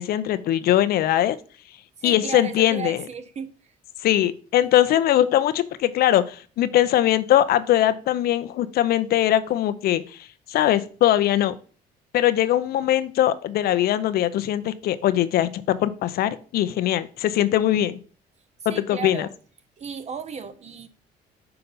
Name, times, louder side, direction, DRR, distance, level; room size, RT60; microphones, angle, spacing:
voice 1, 0.0-1.4 2.0-3.0 4.0-10.2 10.5-11.5 12.1-18.0 18.7-19.3, left 12 dB, 65° left, 0.6 m, -21 dB
voice 2, 2.0-3.7 18.7-19.3 19.8-20.9, right 6 dB, 40° right, 0.7 m, -35 dB
5.8 x 3.9 x 5.4 m
cardioid pair, 110°, 17 cm